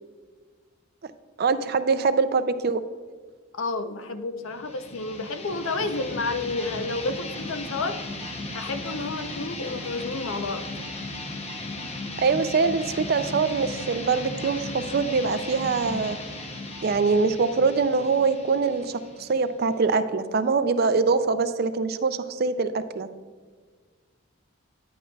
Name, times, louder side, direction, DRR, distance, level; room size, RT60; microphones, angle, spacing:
voice 1, 1.4-2.8 12.2-16.2 16.8-23.1, right 4 dB, 45° right, 12 dB, 0.4 m, -23 dB
voice 2, 3.6-8.0 8.5-10.6, left 3 dB, 75° left, 9 dB, 0.6 m, -30 dB
sound 1, 4.5-19.9, left 2 dB, 30° left, 0.8 m, -36 dB
10.0 x 9.3 x 2.3 m, 1.5 s
head